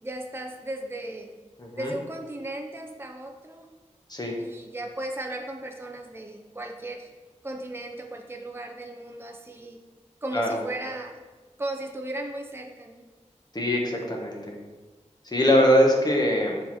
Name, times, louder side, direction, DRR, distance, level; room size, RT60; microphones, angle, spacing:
voice 1, 0.0-1.3 1.8-3.7 4.4-7.1 7.4-9.8 10.2-11.2 11.6-13.0, right 1 dB, 20° right, 2 dB, 0.7 m, -36 dB
voice 2, 1.6-1.9 4.1-4.4 10.3-10.6 13.5-14.5 15.2-16.6, equal, 35° left, -1 dB, 1.4 m, -22 dB
7.0 x 4.6 x 4.3 m, 1.3 s
wide cardioid pair, 70°, 13 cm